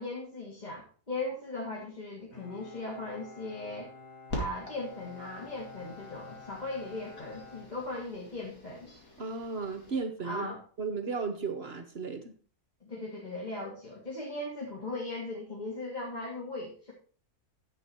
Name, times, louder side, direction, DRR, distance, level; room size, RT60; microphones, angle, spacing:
voice 1, 0.0-3.9 4.3-8.9 10.2-10.6 12.8-16.9, left 2 dB, 30° left, -2 dB, 1.7 m, -38 dB
Bowed string instrument, 2.3-8.5, left 4 dB, 60° left, 2.9 m, -50 dB
sound 1, 4.3-10.0, equal, 80° left, 2.9 m, -44 dB
voice 2, 9.2-10.5 10.8-12.3, right 4 dB, 50° right, 8 dB, 0.9 m, -34 dB
10.0 x 7.6 x 4.3 m, 0.42 s
omnidirectional pair, 1.6 m